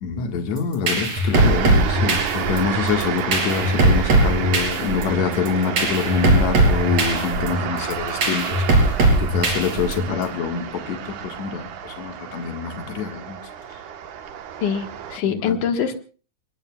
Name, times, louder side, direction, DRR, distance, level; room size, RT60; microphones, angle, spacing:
voice 1, 0.0-13.4 15.2-15.6, left 6 dB, 65° left, 4 dB, 2.9 m, -26 dB
sound 1, 0.6-10.2, right 2 dB, 55° right, 5.5 m, -20 dB
sound 2, 1.3-15.2, right 8 dB, 75° right, 2.8 m, -30 dB
voice 2, 14.6-16.0, left 7 dB, 85° left, 5 dB, 3.0 m, -24 dB
29.0 x 20.5 x 2.4 m, 0.38 s
omnidirectional pair, 3.5 m